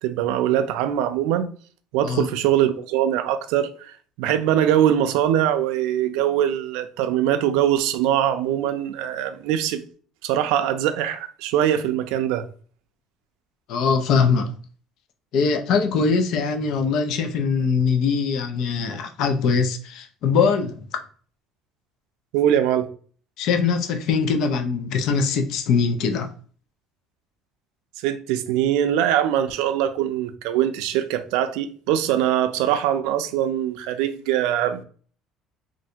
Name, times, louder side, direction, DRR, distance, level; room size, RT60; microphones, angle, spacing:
voice 1, 0.0-1.5 1.9-9.8 10.2-12.4 22.3-22.9 28.0-34.8, right 11 dB, 90° right, 0.4 m, -22 dB
voice 2, 13.7-14.5 15.3-20.8 23.4-26.3, left 5 dB, 50° left, 0.4 m, -22 dB
3.2 x 2.5 x 2.7 m
cardioid pair, 175°, 0 cm